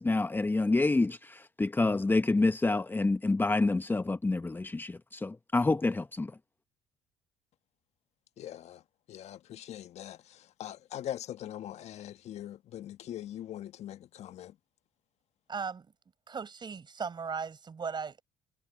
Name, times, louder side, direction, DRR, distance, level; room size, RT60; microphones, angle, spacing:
voice 1, 0.0-6.3, left 3 dB, 15° left, 1.0 m, -28 dB
voice 2, 8.4-8.8 9.1-10.2 10.6-14.5, left 11 dB, 55° left, 1.6 m, -42 dB
voice 3, 15.5-15.9 16.3-18.2, right 5 dB, 35° right, 5.2 m, -37 dB
hypercardioid pair, 60°, 13 cm